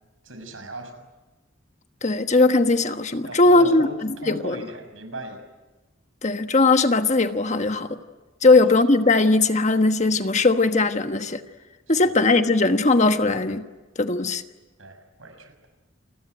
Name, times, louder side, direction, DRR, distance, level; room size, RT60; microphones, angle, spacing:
voice 1, 0.2-1.1 3.2-4.0 4.2-5.4 11.9-12.1 14.8-15.5, right 2 dB, 80° right, 6.3 m, -38 dB
voice 2, 2.0-4.6 6.2-8.0 8.4-11.4 11.9-13.6 14.0-14.4, left 3 dB, 35° left, 1.3 m, -19 dB
29.0 x 21.0 x 9.2 m
head